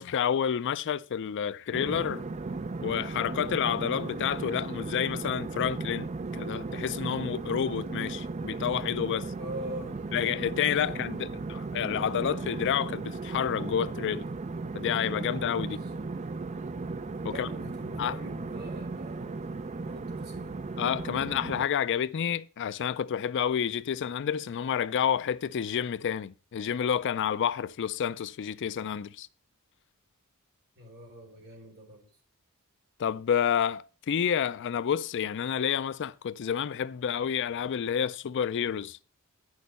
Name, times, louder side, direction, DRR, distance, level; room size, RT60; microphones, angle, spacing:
voice 1, 0.0-2.2 2.8-9.3 10.1-14.3 14.7-15.8 17.2-17.5 18.0-18.2 20.8-29.3 33.0-39.0, left 8 dB, 55° left, 0.4 m, -29 dB
sound 1, 1.7-21.6, right 3 dB, 30° right, 0.4 m, -36 dB
voice 2, 9.4-10.0 10.5-11.5 15.6-16.1 17.2-20.6 30.8-32.1, equal, 50° right, 4.0 m, -44 dB
10.0 x 6.4 x 5.3 m
head